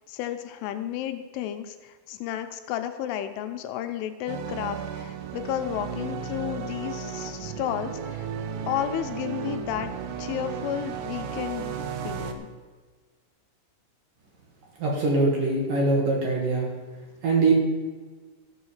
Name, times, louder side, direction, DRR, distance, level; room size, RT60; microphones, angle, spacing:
voice 1, 0.1-8.3 8.7-9.9 10.2-11.7 12.0-12.5, left 11 dB, 85° left, 8 dB, 3.1 m, -32 dB
sound 1, 4.3-12.3, right 7 dB, 75° right, 3.0 m, -34 dB
voice 2, 14.8-16.7 17.2-17.5, right 3 dB, 55° right, -2 dB, 2.6 m, -22 dB
14.5 x 6.3 x 7.4 m, 1.4 s
omnidirectional pair, 5.7 m